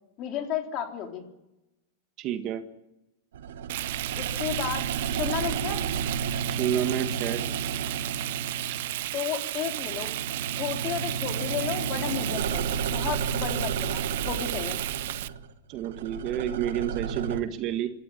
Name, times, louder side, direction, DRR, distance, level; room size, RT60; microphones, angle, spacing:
voice 1, 0.2-1.3 4.1-5.8 9.1-10.1 10.5-14.8, left 9 dB, 35° left, 3 dB, 3.9 m, -33 dB
voice 2, 2.2-2.6 6.5-7.4 15.7-17.9, right 10 dB, 35° right, 8 dB, 1.6 m, -29 dB
sound 1, 3.3-9.2 9.5-17.4, right 6 dB, 85° right, 1.8 m, -33 dB
Frying (food), 3.7-15.3, right 15 dB, 65° right, 0.7 m, -33 dB
26.0 x 13.5 x 9.8 m, 0.92 s
supercardioid pair, 155°, 0 cm